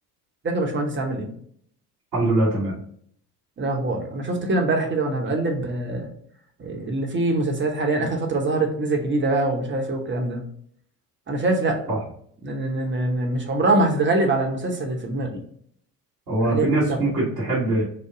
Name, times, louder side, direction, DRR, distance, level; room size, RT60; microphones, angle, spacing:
voice 1, 0.4-1.3 3.6-6.1 6.6-10.4 11.3-11.9 12.4-15.3 16.4-16.8, right 2 dB, 25° right, 2 dB, 1.0 m, -24 dB
voice 2, 2.1-2.8 11.9-12.0 16.3-17.8, right 2 dB, 85° right, -9 dB, 1.5 m, -22 dB
4.9 x 2.2 x 3.5 m, 0.63 s
figure-of-eight pair, 55°, 48 cm